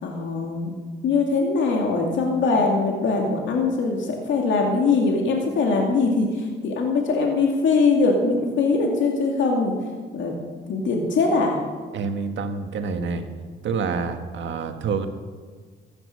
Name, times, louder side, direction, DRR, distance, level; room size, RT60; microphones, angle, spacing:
voice 1, 0.0-0.7 1.0-9.7 10.1-10.3 10.7-11.6, left 4 dB, 75° left, 0 dB, 2.4 m, -22 dB
voice 2, 11.9-13.3 13.6-15.1, right 5 dB, 70° right, 6 dB, 1.6 m, -27 dB
14.5 x 10.5 x 6.6 m, 1.5 s
cardioid pair, 90°, 20 cm